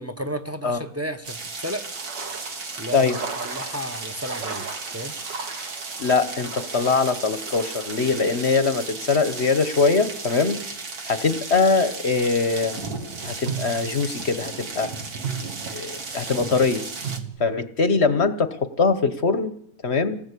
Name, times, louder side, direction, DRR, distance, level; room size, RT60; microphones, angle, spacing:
voice 1, 0.0-1.9 2.8-4.7 4.9-5.1, equal, 10° right, 6 dB, 1.0 m, -33 dB
sound 1, 1.2-17.2, right 4 dB, 60° right, 2.5 m, -35 dB
sound 2, 1.7-10.4, right 4 dB, 80° right, 2.9 m, -40 dB
voice 2, 6.0-10.6 11.1-12.9 13.2-14.9 15.4-16.8 17.4-19.5 19.8-20.2, left 4 dB, 45° left, 11 dB, 1.2 m, -22 dB
sound 3, 12.1-12.2 13.5-14.2 14.6-14.8 15.2-16.1 17.0-17.8 18.2-18.4, right 7 dB, 40° right, 1.6 m, -34 dB
28.0 x 18.5 x 8.4 m, 0.75 s
omnidirectional pair, 1.9 m